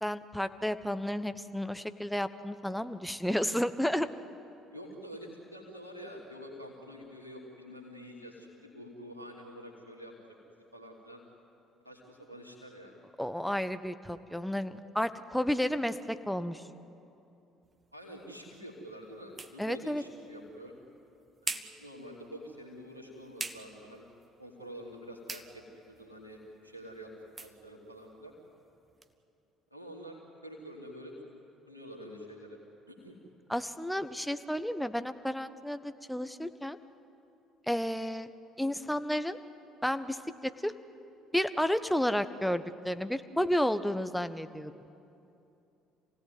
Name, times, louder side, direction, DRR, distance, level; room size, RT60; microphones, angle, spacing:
voice 1, 0.0-4.1 13.2-16.6 19.6-20.0 33.5-36.8 37.7-38.3 38.6-39.4 39.8-40.7 41.3-44.7, equal, ahead, 11 dB, 1.2 m, -32 dB
voice 2, 4.7-10.1 10.7-11.2 11.8-13.0 17.9-20.7 21.4-24.0 24.4-27.1 27.4-28.3 29.7-31.1 31.7-32.6 32.9-33.2, equal, 90° right, 0 dB, 3.0 m, -47 dB
sound 1, 17.6-29.1, right 3 dB, 25° right, 1.4 m, -47 dB
28.0 x 17.5 x 9.5 m, 2.8 s
figure-of-eight pair, 55°, 0 cm